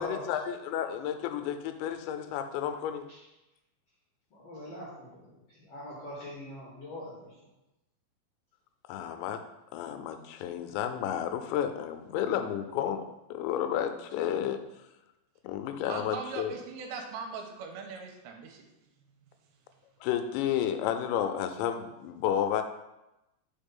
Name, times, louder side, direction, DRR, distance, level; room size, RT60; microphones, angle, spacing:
voice 1, 0.0-3.1 8.9-9.4 9.7-13.0 13.3-14.6 15.4-16.5 20.0-22.6, left 9 dB, 90° left, 8 dB, 2.9 m, -31 dB
voice 2, 4.3-7.4, left 1 dB, 70° left, -6 dB, 1.4 m, -43 dB
voice 3, 15.9-18.6, right 5 dB, 90° right, 3 dB, 2.9 m, -40 dB
5.6 x 4.6 x 5.3 m, 0.95 s
omnidirectional pair, 5.1 m